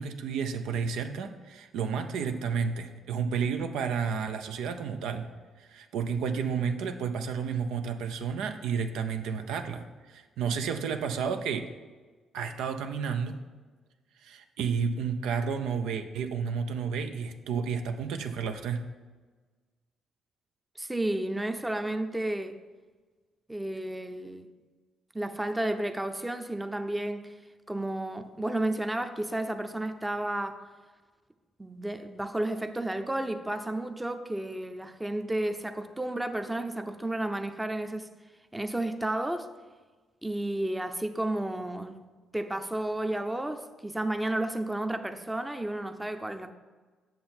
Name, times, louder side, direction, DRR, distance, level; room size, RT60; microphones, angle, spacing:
voice 1, 0.0-5.3 5.6-11.7 12.3-13.4 14.2-18.8, right 6 dB, 90° right, 0.6 m, -31 dB
voice 2, 20.8-22.6 23.5-24.5 25.1-27.3 27.7-30.6 31.6-38.1 38.5-39.5 40.2-42.0 42.3-46.5, right 1 dB, 10° right, 0.6 m, -32 dB
7.6 x 6.7 x 4.4 m
cardioid pair, 90°, 0 cm